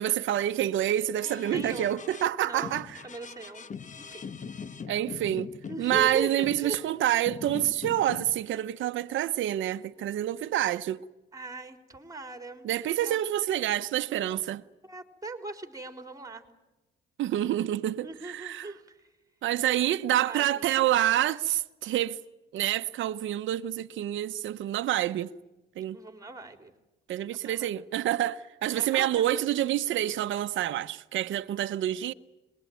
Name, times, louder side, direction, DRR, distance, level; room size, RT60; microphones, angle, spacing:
voice 1, 0.0-3.0 4.9-5.5 5.8-11.0 12.6-14.6 17.2-18.7 19.4-22.2 22.5-25.3 25.8-26.0 27.1-32.1, right 12 dB, 75° right, 0.9 m, -27 dB
sound 1, 1.2-2.3 2.6-7.0 7.3-8.5, left 6 dB, 40° left, 1.2 m, -41 dB
voice 2, 1.2-1.9 2.4-2.8 3.0-3.7 4.0-4.3 5.7-6.9 11.3-12.7 13.0-13.2 14.8-16.4 18.0-19.1 19.8-20.0 20.2-20.9 25.9-26.7 27.3-27.7 28.8-29.2, right 3 dB, 15° right, 3.8 m, -40 dB
26.0 x 22.0 x 9.3 m
cardioid pair, 90°, 20 cm